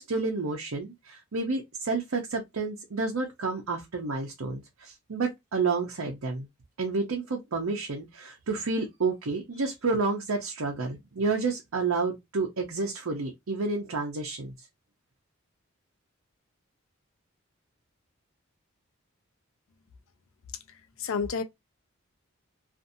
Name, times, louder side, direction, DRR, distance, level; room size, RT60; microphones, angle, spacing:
voice 1, 0.0-6.5 6.8-14.5, right 4 dB, 90° right, 0.7 m, -30 dB
voice 2, 20.7-21.4, left 5 dB, 75° left, 0.5 m, -31 dB
2.6 x 2.5 x 2.5 m
head